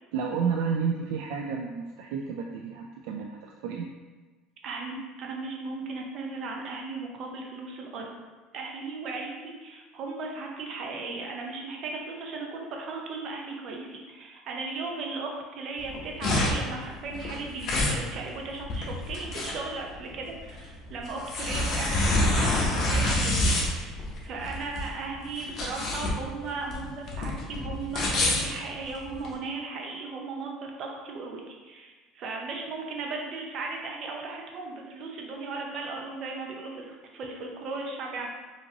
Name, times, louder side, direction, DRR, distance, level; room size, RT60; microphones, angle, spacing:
voice 1, 0.1-3.9, right 6 dB, 80° right, 1 dB, 0.3 m, -31 dB
voice 2, 4.6-8.2 8.5-38.3, right 3 dB, 50° right, 0 dB, 0.8 m, -36 dB
sound 1, 15.8-29.3, left 1 dB, 45° left, 0.9 m, -27 dB
5.1 x 2.8 x 2.8 m, 1.3 s
cardioid pair, 130°, 0 cm